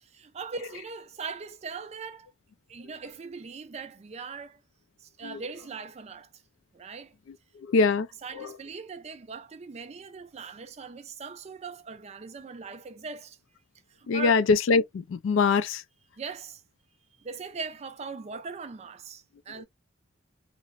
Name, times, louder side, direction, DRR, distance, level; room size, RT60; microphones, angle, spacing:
voice 1, 0.0-2.3 2.7-4.6 5.0-6.4 6.7-7.2 8.2-13.4 13.9-14.4 16.2-16.6 17.2-19.6, right 4 dB, 35° right, 0.4 m, -40 dB
voice 2, 7.6-8.1 8.3-8.6 14.1-15.8, left 4 dB, 80° left, 0.3 m, -23 dB
2.9 x 2.0 x 2.3 m
head